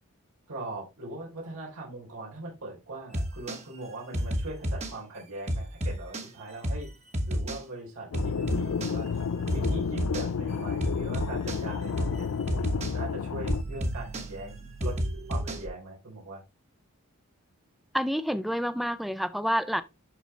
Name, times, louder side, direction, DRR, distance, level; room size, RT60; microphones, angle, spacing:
voice 1, 0.5-6.9 7.3-9.1 9.5-12.3 12.7-15.0 15.3-16.4, right 2 dB, 90° right, 3.6 m, -40 dB
sound 1, 3.1-3.6 4.1-4.9 5.5-6.3 6.6-6.9 7.1-7.6 8.1-8.9 9.5-10.3 10.8-11.6 12.0-12.2 12.5-12.9 13.5-15.7, equal, 30° right, 1.2 m, -31 dB
sound 2, 8.1-13.6, left 6 dB, 75° left, 0.4 m, -31 dB
voice 2, 17.9-19.8, equal, ahead, 0.4 m, -28 dB
11.5 x 3.9 x 3.2 m
head